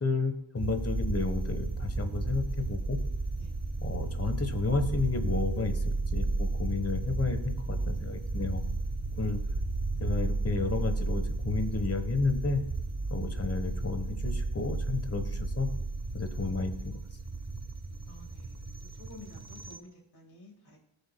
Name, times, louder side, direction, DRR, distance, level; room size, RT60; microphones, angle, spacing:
voice 1, 0.0-3.0 3.8-8.6 9.1-9.4 10.0-12.6 13.1-15.7 16.1-16.9, left 4 dB, 30° left, 8 dB, 1.3 m, -32 dB
sound 1, 0.6-19.8, right 3 dB, 30° right, 1.1 m, -33 dB
voice 2, 18.1-18.6 19.0-20.8, left 1 dB, 50° left, -2 dB, 2.9 m, -51 dB
17.5 x 6.9 x 2.3 m, 0.85 s
cardioid pair, 55°, 50 cm